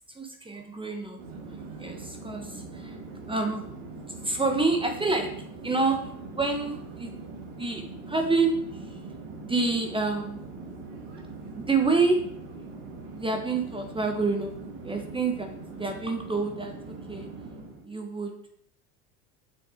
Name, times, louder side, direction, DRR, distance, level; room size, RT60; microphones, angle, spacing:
voice 1, 0.1-1.2 1.8-3.0 3.3-3.7 4.2-5.3 5.6-7.1 7.5-8.5 9.4-10.4 11.6-12.2 13.1-14.5 14.8-17.3 17.8-18.3, right 3 dB, 10° right, 4 dB, 1.0 m, -28 dB
Conversation / Chatter / Fixed-wing aircraft airplane, 1.2-17.9, right 3 dB, 60° right, 2.0 m, -42 dB
6.6 x 6.0 x 4.3 m, 0.68 s
hypercardioid pair, 90°, 43 cm